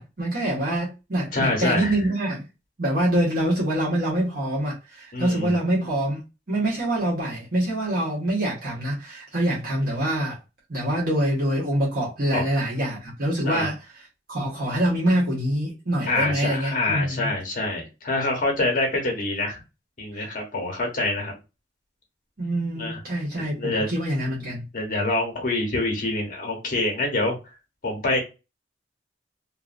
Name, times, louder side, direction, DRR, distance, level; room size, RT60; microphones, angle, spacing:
voice 1, 0.0-2.5 2.8-6.2 6.5-10.4 10.7-13.7 14.3-17.3 22.4-24.7, right 1 dB, 60° right, 1.3 m, -25 dB
voice 2, 1.3-1.9 5.1-5.6 12.3-12.6 13.4-13.7 16.1-19.6 20.0-21.3 22.8-23.0 23.4-23.9 24.7-27.3 27.8-28.2, left 2 dB, 50° left, 1.1 m, -26 dB
2.9 x 2.5 x 2.5 m
head